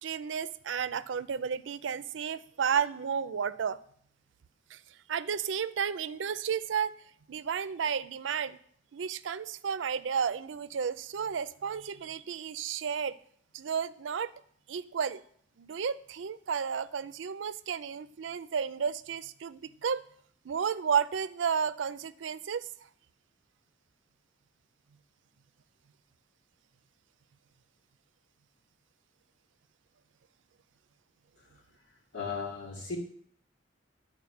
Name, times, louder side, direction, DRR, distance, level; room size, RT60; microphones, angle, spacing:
voice 1, 0.0-3.8 4.7-4.8 5.1-6.9 7.3-8.6 8.9-13.2 13.5-14.3 14.7-15.2 15.6-20.0 20.4-22.7, right 7 dB, 85° right, 0.4 m, -32 dB
voice 2, 32.1-33.0, left 5 dB, 80° left, 2.1 m, -36 dB
11.0 x 4.6 x 5.9 m
head